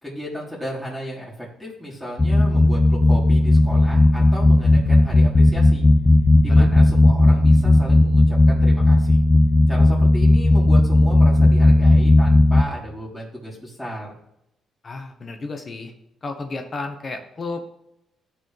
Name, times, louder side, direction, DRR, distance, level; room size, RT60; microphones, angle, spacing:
voice 1, 0.0-5.8 6.4-9.2 9.7-14.1, equal, 5° left, -7 dB, 3.3 m, -34 dB
sound 1, 2.2-12.6, left 2 dB, 20° left, 0.5 m, -15 dB
voice 2, 14.8-15.9 16.2-17.7, left 3 dB, 40° left, 5 dB, 1.1 m, -32 dB
13.0 x 4.8 x 3.3 m, 0.83 s
cardioid pair, 90°, 0 cm